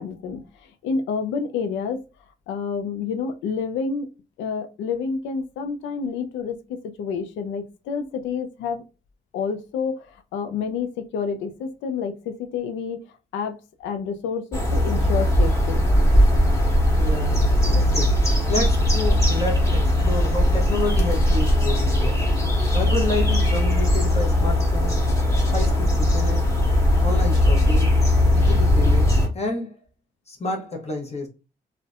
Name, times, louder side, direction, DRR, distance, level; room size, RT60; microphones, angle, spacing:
voice 1, 0.0-2.0 2.5-4.1 4.4-6.6 7.0-8.8 9.3-13.0 13.3-15.9, left 5 dB, 90° left, 0.4 m, -29 dB
sound 1, 14.5-29.3, left 1 dB, 15° left, 1.2 m, -19 dB
voice 2, 16.9-22.3 22.7-25.1 25.4-26.5 27.0-28.0 28.2-29.8 30.3-31.3, left 2 dB, 35° left, 0.8 m, -30 dB
2.5 x 2.1 x 2.4 m
supercardioid pair, 60°, 19 cm